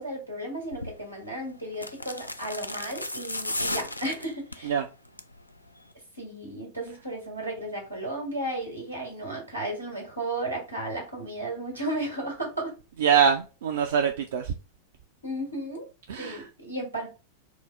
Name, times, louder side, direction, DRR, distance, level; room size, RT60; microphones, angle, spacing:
voice 1, 0.0-4.7 6.2-12.7 15.2-15.9 16.2-17.1, right 1 dB, 90° right, 1.7 m, -34 dB
sound 1, 0.7-1.0 1.7-4.7 5.0-5.4 5.7-5.8, left 1 dB, 85° left, 0.3 m, -34 dB
voice 2, 13.0-14.5 16.1-16.5, right 7 dB, 60° right, 0.4 m, -24 dB
4.4 x 2.0 x 3.5 m
figure-of-eight pair, 90°, 0 cm